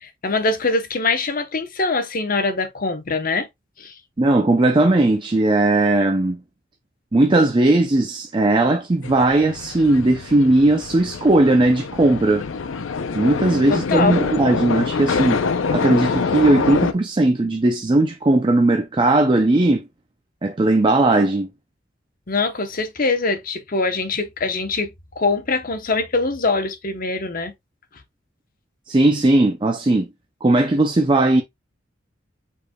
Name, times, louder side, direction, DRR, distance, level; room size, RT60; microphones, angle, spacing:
voice 1, 0.0-3.5 3.8-3.9 13.7-14.1 22.3-27.5, left 3 dB, 45° left, 0.9 m, -23 dB
voice 2, 4.2-6.4 7.1-12.4 13.1-15.4 15.7-19.8 20.4-21.5 28.9-30.1 30.4-31.4, right 2 dB, 25° right, 0.5 m, -17 dB
sound 1, 9.0-16.9, left 4 dB, 85° left, 0.5 m, -25 dB
5.1 x 4.3 x 2.2 m
head